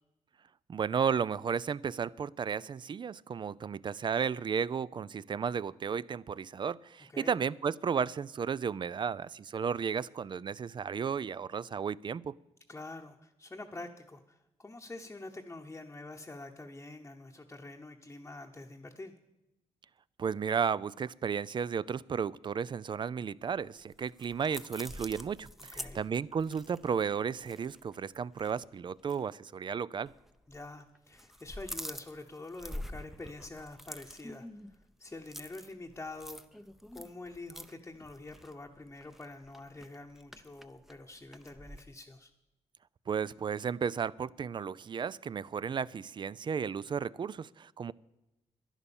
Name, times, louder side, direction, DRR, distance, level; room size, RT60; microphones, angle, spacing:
voice 1, 0.7-12.3 20.2-30.1 43.1-47.9, right 6 dB, 40° right, 20 dB, 0.4 m, -33 dB
voice 2, 12.7-19.1 25.7-26.0 30.5-36.6 36.9-42.3, left 2 dB, 20° left, 1 dB, 0.9 m, -46 dB
sound 1, 23.6-28.0 28.3-28.5 29.0-29.2 30.1-30.7 31.0-41.8, equal, ahead, 0.6 m, -47 dB
11.0 x 10.5 x 7.1 m, 0.93 s
cardioid pair, 90°, 12 cm